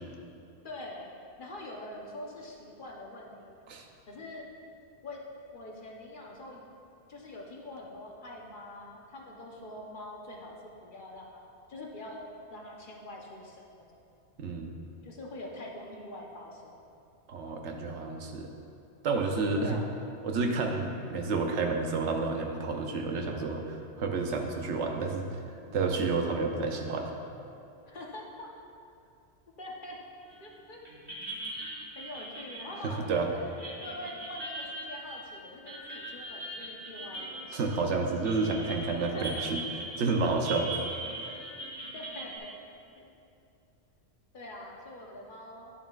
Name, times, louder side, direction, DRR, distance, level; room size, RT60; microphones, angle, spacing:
voice 1, 0.6-1.1 1.4-3.5 4.1-4.5 5.0-5.2 5.5-6.7 7.1-13.9 15.0-16.9 19.5-19.9 27.9-28.5 29.6-30.0 30.4-30.8 31.9-33.4 33.8-37.6 39.1-39.4 41.9-42.5 43.0-43.1 44.3-45.7, left 1 dB, 50° left, -2 dB, 1.0 m, -44 dB
voice 2, 14.4-14.7 17.3-18.5 19.0-19.8 20.2-25.4 25.7-27.1 32.8-33.3 37.5-39.6 40.0-40.7 41.2-41.3, right 3 dB, 75° right, 3 dB, 1.0 m, -30 dB
sound 1, 30.3-30.6 30.9-42.4, right 2 dB, 20° right, 1.4 m, -41 dB
10.5 x 7.2 x 2.4 m, 2.6 s
omnidirectional pair, 1.2 m